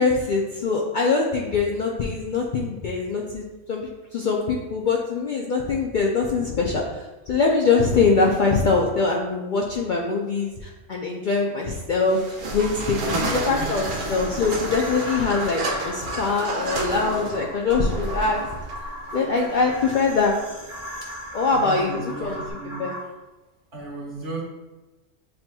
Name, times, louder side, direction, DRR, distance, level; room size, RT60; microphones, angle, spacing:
voice 1, 0.0-3.4 3.7-3.8 4.1-18.4 19.1-20.4 21.3-22.4 22.8-22.9, left 4 dB, 60° left, -1 dB, 0.5 m, -23 dB
sound 1, 12.0-22.5, right 2 dB, 55° right, 0.7 m, -31 dB
voice 2, 13.0-13.8 21.5-22.9 23.7-24.4, right 2 dB, 70° right, -3 dB, 1.6 m, -34 dB
sound 2, 13.1-23.0, equal, 10° left, 1.0 m, -38 dB
7.5 x 2.9 x 2.2 m, 1.1 s
omnidirectional pair, 1.2 m